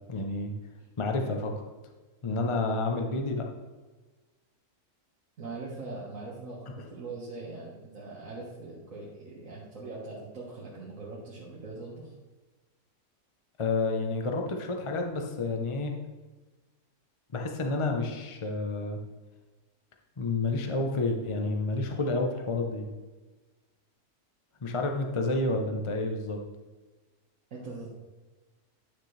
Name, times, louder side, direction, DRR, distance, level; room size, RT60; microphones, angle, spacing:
voice 1, 0.1-0.5 1.0-1.5 2.2-3.5 13.6-15.9 17.3-19.0 20.2-22.9 24.6-26.4, left 3 dB, 30° left, 3 dB, 0.5 m, -29 dB
voice 2, 5.4-12.1 27.5-27.9, right 3 dB, 60° right, -6 dB, 1.8 m, -41 dB
10.0 x 6.6 x 3.3 m, 1.3 s
omnidirectional pair, 1.6 m